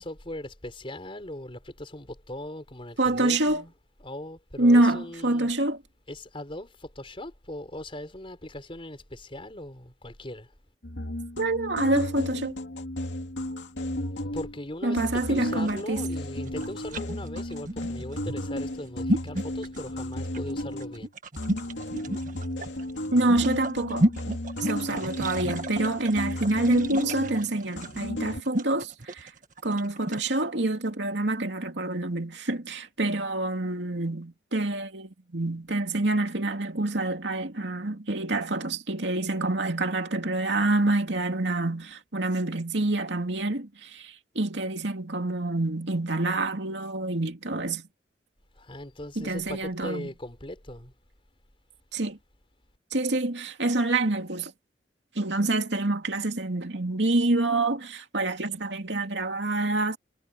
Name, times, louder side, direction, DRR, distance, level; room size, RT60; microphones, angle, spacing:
voice 1, 0.0-3.7 4.0-5.5 6.1-10.5 14.2-21.1 48.5-50.9, left 1 dB, 30° left, 4.3 m, -39 dB
voice 2, 3.0-3.6 4.6-5.8 11.4-12.5 14.8-16.0 23.1-24.1 24.6-29.3 29.6-47.9 49.2-50.1 51.9-52.2 52.9-54.5 55.2-60.0, right 2 dB, 75° right, 2.7 m, -27 dB
sound 1, 10.8-14.7 15.0-21.1 21.4-27.5 27.8-28.4, left 1 dB, 90° left, 2.3 m, -34 dB
sound 2, 15.5-30.3, right 1 dB, 45° right, 1.7 m, -32 dB
head